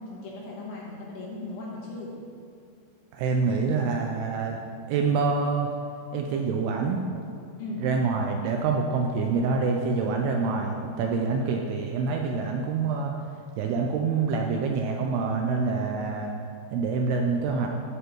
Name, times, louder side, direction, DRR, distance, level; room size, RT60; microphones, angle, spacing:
voice 1, 0.0-2.1 7.6-7.8, left 2 dB, 70° left, -4 dB, 2.6 m, -37 dB
voice 2, 3.1-4.6 4.9-5.7 6.1-7.0 7.8-13.1 13.6-16.3 16.7-17.7, right 4 dB, 80° right, 2 dB, 2.4 m, -26 dB
12.5 x 6.8 x 3.0 m, 2.4 s
omnidirectional pair, 5.0 m